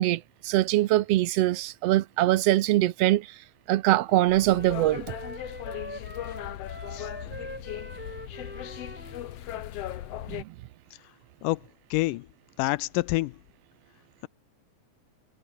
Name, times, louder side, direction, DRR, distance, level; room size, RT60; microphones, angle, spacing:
voice 1, 0.0-5.1 10.3-10.4, right 15 dB, 75° right, 1.4 m, -23 dB
sound 1, 4.1-9.2, equal, 5° right, 5.4 m, -43 dB
sound 2, 4.3-10.4, left 12 dB, 65° left, 1.8 m, -38 dB
voice 2, 11.9-12.3 12.6-13.3, left 20 dB, 85° left, 2.2 m, -27 dB
omnidirectional pair, 3.7 m